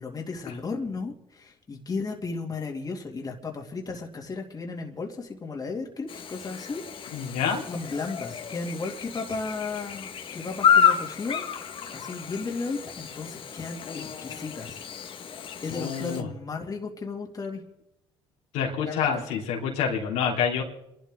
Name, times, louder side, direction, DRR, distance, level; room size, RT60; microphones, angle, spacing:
voice 1, 0.0-7.4 7.7-11.4 11.9-14.8 15.6-17.6 18.8-19.2, left 4 dB, 35° left, 1 dB, 2.6 m, -34 dB
Chirp tweet / Buzz, 6.1-16.2, left 8 dB, 50° left, 1.6 m, -29 dB
voice 2, 7.1-7.6 15.7-16.3 18.5-20.6, left 7 dB, 80° left, -1 dB, 3.1 m, -27 dB
27.5 x 12.0 x 3.8 m, 0.85 s
supercardioid pair, 75°, 12 cm